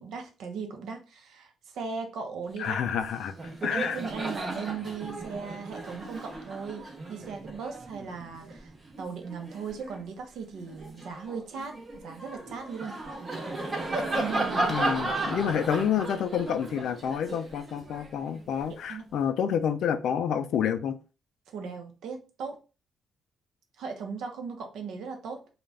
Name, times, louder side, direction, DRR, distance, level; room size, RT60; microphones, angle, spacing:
voice 1, 0.0-2.9 3.7-8.7 9.0-13.0 14.1-15.6 18.9-19.0 21.5-22.6 23.8-25.4, right 5 dB, 75° right, 0.6 m, -38 dB
voice 2, 2.6-3.3 3.6-4.0 14.7-21.0, left 8 dB, 75° left, 0.4 m, -28 dB
Laughter, 2.9-3.0 3.3-10.0 10.5-18.7, right 2 dB, 30° right, 0.7 m, -35 dB
2.4 x 2.1 x 3.3 m
cardioid pair, 90°, 0 cm